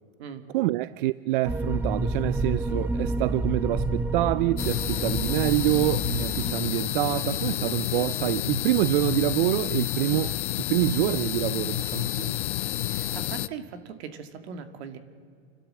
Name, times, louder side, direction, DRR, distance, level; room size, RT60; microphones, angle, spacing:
voice 1, 0.5-12.4, right 17 dB, 50° right, 0.5 m, -26 dB
sound 1, 1.4-6.5, right 2 dB, 5° right, 0.6 m, -29 dB
sound 2, 4.6-13.5, left 13 dB, 80° left, 0.7 m, -29 dB
voice 2, 12.9-15.0, right 7 dB, 65° right, 2.3 m, -40 dB
30.0 x 12.0 x 7.6 m
hypercardioid pair, 135°, 34 cm